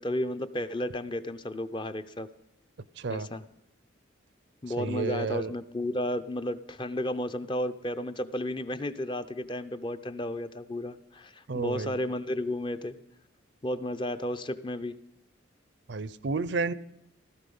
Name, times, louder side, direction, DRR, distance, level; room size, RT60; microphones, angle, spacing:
voice 1, 0.0-2.3 3.1-3.4 4.6-12.9 13.6-14.9, left 1 dB, 25° left, 11 dB, 0.6 m, -33 dB
voice 2, 3.0-3.3 4.8-5.5 11.5-12.0 15.9-16.7, right 4 dB, 60° right, 18 dB, 0.5 m, -31 dB
15.5 x 13.5 x 5.5 m, 0.81 s
head